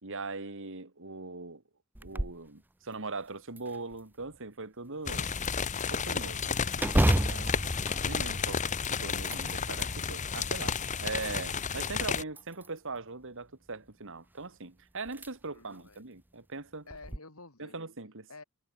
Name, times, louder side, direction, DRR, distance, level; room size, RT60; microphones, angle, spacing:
voice 1, 0.0-1.6 2.0-5.3 5.9-6.3 7.3-7.6 8.0-8.6 8.9-16.9 17.6-18.3, right 3 dB, 60° right, 2.6 m, -40 dB
sound 1, 1.9-2.5 2.9-3.0 3.6-4.4 6.8-8.8 9.2-9.9 10.5-11.4 12.3-13.0 14.4-14.5 15.1-15.3 15.7-15.8 16.9-17.2, right 1 dB, 10° right, 0.5 m, -31 dB
sound 2, 5.1-12.2, left 6 dB, 35° left, 0.9 m, -32 dB
voice 2, 6.1-7.6 15.5-16.0 16.9-17.8 18.3-18.4, left 3 dB, 70° left, 5.0 m, -52 dB
head